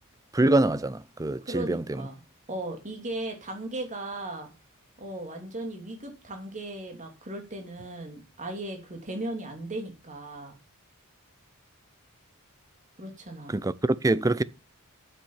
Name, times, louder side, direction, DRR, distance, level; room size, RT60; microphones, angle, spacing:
voice 1, 0.3-1.8 13.5-14.4, right 2 dB, 15° right, 0.5 m, -24 dB
voice 2, 1.4-2.2 2.5-4.5 5.0-10.5 13.0-13.5, right 1 dB, 35° right, 2.9 m, -37 dB
9.0 x 7.3 x 7.2 m
head